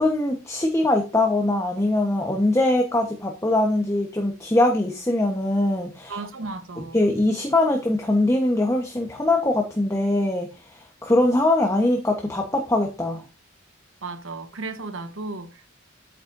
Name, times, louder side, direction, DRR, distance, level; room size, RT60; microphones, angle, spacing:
voice 1, 0.0-6.1 6.9-13.2, left 2 dB, 15° left, 1.0 m, -22 dB
voice 2, 6.1-7.0 14.0-15.7, right 3 dB, 80° right, 1.0 m, -34 dB
8.6 x 8.4 x 2.6 m
head